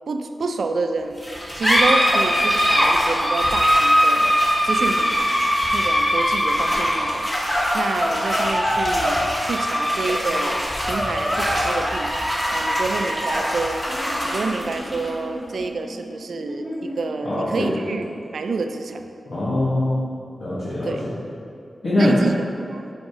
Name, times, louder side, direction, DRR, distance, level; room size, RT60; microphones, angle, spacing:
voice 1, 0.1-1.2 1.6-4.3 4.6-5.4 5.7-7.3 7.7-12.1 12.5-13.9 14.2-18.0 18.3-19.1 20.8-21.1 22.0-22.9, right 3 dB, 85° right, 6 dB, 0.4 m, -28 dB
sound 1, 1.2-18.2, equal, 15° left, 1.6 m, -22 dB
voice 2, 17.2-17.7 19.3-20.0 20.4-20.9 21.8-22.1, left 1 dB, 55° left, -11 dB, 1.6 m, -22 dB
8.8 x 5.2 x 3.6 m, 2.5 s
wide cardioid pair, 115°, 0 cm